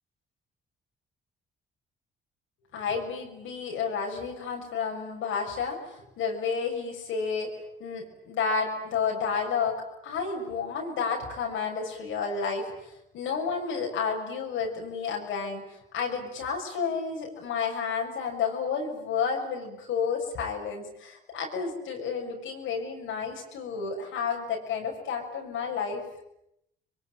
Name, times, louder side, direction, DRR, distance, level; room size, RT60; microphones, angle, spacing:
voice 1, 2.7-12.7 13.1-26.0, left 5 dB, 85° left, 1 dB, 6.9 m, -31 dB
26.0 x 23.0 x 9.3 m, 0.80 s
cardioid pair, 90°, 20 cm